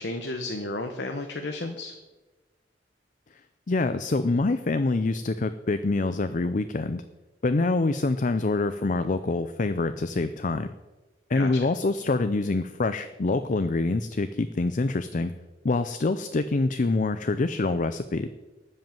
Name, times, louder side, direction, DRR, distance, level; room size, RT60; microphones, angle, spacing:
voice 1, 0.0-1.9 11.3-11.5, left 2 dB, 70° left, 5 dB, 1.1 m, -32 dB
voice 2, 3.7-7.0 7.4-10.7 11.3-15.3 15.6-18.3, left 3 dB, 45° left, 11 dB, 0.5 m, -25 dB
12.5 x 5.5 x 9.0 m, 1.2 s
head